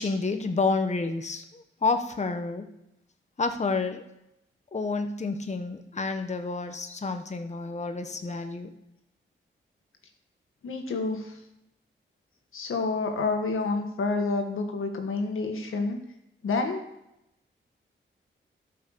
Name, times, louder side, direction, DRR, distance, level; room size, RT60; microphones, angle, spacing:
voice 1, 0.0-2.6 3.4-4.0 4.7-8.7, left 3 dB, 35° left, 7 dB, 1.0 m, -29 dB
voice 2, 10.6-11.4 12.5-16.0 16.4-16.8, left 3 dB, 80° left, 4 dB, 1.7 m, -28 dB
12.0 x 5.8 x 6.8 m, 0.86 s
cardioid pair, 60°, 21 cm